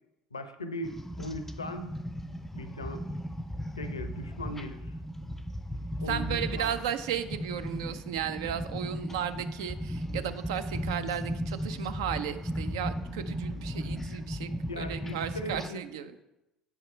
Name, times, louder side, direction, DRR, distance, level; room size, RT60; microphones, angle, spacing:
voice 1, 0.3-1.9 2.5-3.0 3.8-4.9 6.0-6.7 14.7-15.8, left 1 dB, 85° left, 10 dB, 0.5 m, -39 dB
sound 1, 0.8-15.7, equal, 10° left, 0.4 m, -36 dB
voice 2, 6.1-16.2, right 9 dB, 70° right, 11 dB, 0.4 m, -34 dB
7.8 x 4.8 x 4.3 m, 0.94 s
figure-of-eight pair, 60°, 3 cm